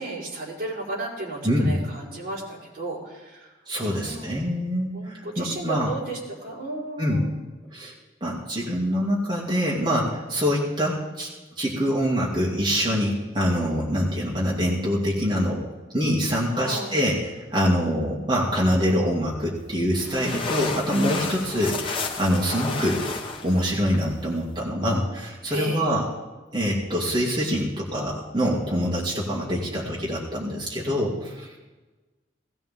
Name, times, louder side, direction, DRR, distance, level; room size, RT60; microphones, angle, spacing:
voice 1, 0.0-3.5 3.8-4.4 4.9-7.3 16.5-17.0 22.7-22.9 25.5-25.8, right 2 dB, 55° right, -5 dB, 4.4 m, -34 dB
voice 2, 1.4-1.8 3.7-5.9 7.0-7.3 7.7-7.9 8.2-11.3 11.6-23.0 23.4-26.1 26.5-31.5, equal, 25° right, -5 dB, 2.4 m, -25 dB
sound 1, 19.5-24.6, left 3 dB, 30° left, 1.1 m, -32 dB
18.5 x 15.5 x 3.7 m, 1.2 s
head